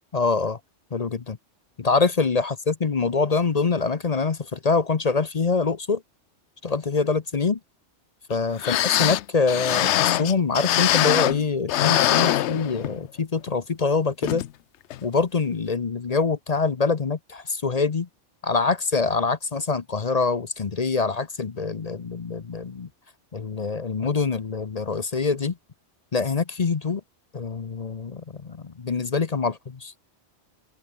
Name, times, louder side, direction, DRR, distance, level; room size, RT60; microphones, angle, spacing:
voice 1, 0.1-0.6 0.9-1.4 1.8-6.0 6.6-7.6 8.3-14.4 15.0-18.1 18.4-22.9 23.3-25.5 26.1-27.0 27.3-29.9, left 4 dB, 35° left, 0.8 m, -25 dB
sound 1, 8.3-8.4 8.6-11.4 11.7-13.1 13.5-13.6 14.2-14.5 14.9-15.0, left 13 dB, 75° left, 0.9 m, -22 dB
open air
omnidirectional pair, 1.2 m